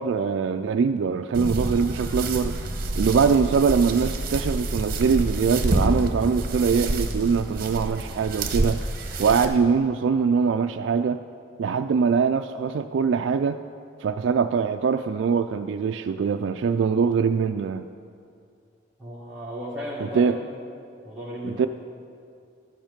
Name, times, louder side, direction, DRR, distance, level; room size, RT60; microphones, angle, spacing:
voice 1, 0.0-2.6 3.0-8.8 9.2-11.2 11.6-13.6 14.0-17.9 20.1-20.4 21.4-21.7, right 5 dB, 75° right, 7 dB, 0.3 m, -23 dB
sound 1, 1.3-9.4, right 2 dB, 50° right, 1.0 m, -28 dB
voice 2, 19.0-20.5 21.0-21.6, equal, 5° right, -10 dB, 1.6 m, -35 dB
13.5 x 9.0 x 5.1 m, 2.4 s
head